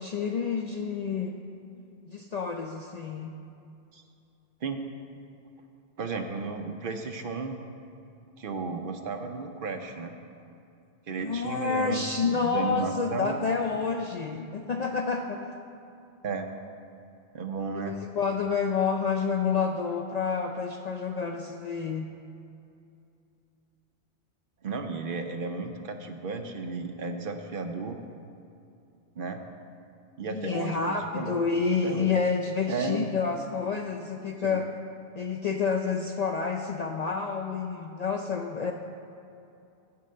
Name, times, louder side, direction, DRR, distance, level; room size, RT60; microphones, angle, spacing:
voice 1, 0.0-1.4 2.1-3.3 11.2-15.4 17.9-22.1 30.3-34.7 35.2-38.7, left 5 dB, 55° left, 3 dB, 0.4 m, -29 dB
voice 2, 6.0-7.6 8.4-10.2 11.1-13.4 16.2-16.5 17.3-18.0 24.6-28.0 29.2-29.4 30.2-31.4 31.8-32.1 32.7-33.1 34.4-34.6, right 4 dB, 60° right, 6 dB, 0.8 m, -34 dB
8.4 x 5.3 x 7.6 m, 2.6 s
omnidirectional pair, 1.1 m